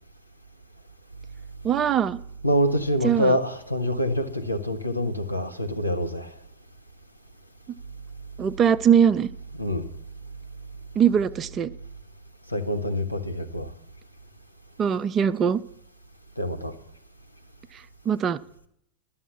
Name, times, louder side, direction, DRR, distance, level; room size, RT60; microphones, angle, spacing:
voice 1, 1.6-2.2 3.0-3.4 8.4-9.3 11.0-11.7 14.8-15.6 18.1-18.4, right 8 dB, 25° right, 0.4 m, -21 dB
voice 2, 2.4-6.3 9.6-9.9 12.5-13.7 16.4-16.7, equal, 90° left, 1.0 m, -26 dB
11.5 x 7.2 x 6.8 m
figure-of-eight pair, 90°, 0 cm